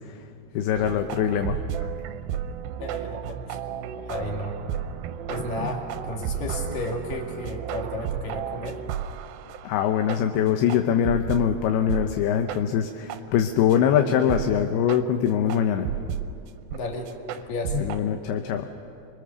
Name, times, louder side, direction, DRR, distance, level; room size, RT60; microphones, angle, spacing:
voice 1, 0.5-1.6 5.6-5.7 9.6-15.9 17.7-18.7, left 9 dB, 75° left, 6 dB, 2.6 m, -23 dB
sound 1, 0.7-11.5 11.9-12.1 12.5-12.6 13.1-13.2 13.7-13.8 14.3-14.5 14.9-15.0 15.5-16.3 16.7-16.8 17.1-18.0, right 9 dB, 80° right, 2.3 m, -32 dB
voice 2, 2.8-3.6 4.0-4.6 5.3-8.8 16.7-17.8, left 2 dB, 60° left, 1 dB, 3.8 m, -33 dB
26.5 x 22.0 x 6.9 m, 2.6 s
omnidirectional pair, 4.8 m